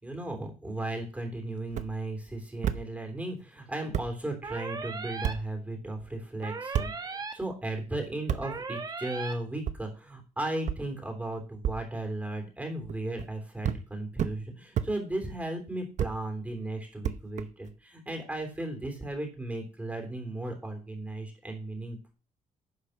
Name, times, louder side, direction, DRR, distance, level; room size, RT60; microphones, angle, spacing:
voice 1, 0.0-22.1, right 2 dB, 10° right, 3 dB, 3.3 m, -36 dB
sound 1, 1.7-1.9 2.6-2.8 3.6-3.7 3.9-4.1 5.2-5.4 6.7-6.9 8.3-8.4 9.6-9.8 10.7-10.8 11.6-11.8 12.9-13.3 13.6-13.8 14.2-14.3 14.7-14.9 16.0-16.1 17.0-17.7, right 9 dB, 60° right, 0.8 m, -30 dB
sound 2, 4.4-5.3 6.4-7.3 8.4-9.3, right 4 dB, 30° right, 1.4 m, -37 dB
10.5 x 5.1 x 6.5 m, 0.34 s
cardioid pair, 125°, 14 cm